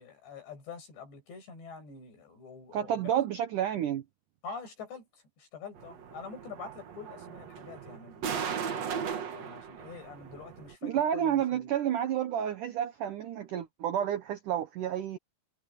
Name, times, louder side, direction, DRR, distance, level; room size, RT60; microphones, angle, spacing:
voice 1, 0.0-3.1 4.4-5.1 5.4-11.7, left 5 dB, 70° left, 10.0 m, -46 dB
voice 2, 2.7-4.0 10.8-15.2, right 10 dB, 85° right, 1.8 m, -30 dB
sound 1, 5.8-10.7, right 7 dB, 50° right, 2.2 m, -38 dB
omnidirectional pair, 5.2 m